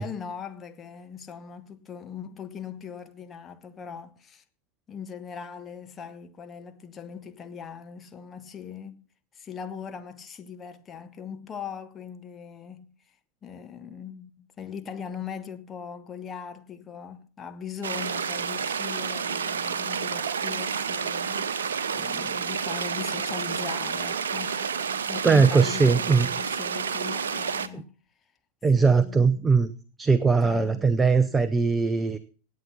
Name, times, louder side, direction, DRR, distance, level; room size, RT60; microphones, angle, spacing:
voice 1, 0.0-4.4 4.9-9.0 9.3-12.9 13.4-21.6 21.9-24.7 25.1-27.9 28.7-29.5 30.4-31.0, left 7 dB, 20° left, 1.4 m, -40 dB
sound 1, 17.8-27.7, right 6 dB, 65° right, 0.9 m, -30 dB
voice 2, 25.2-26.3 27.7-27.8 28.6-29.7 30.0-32.2, right 4 dB, 10° right, 0.8 m, -20 dB
17.5 x 8.7 x 5.7 m
figure-of-eight pair, 90°, 0 cm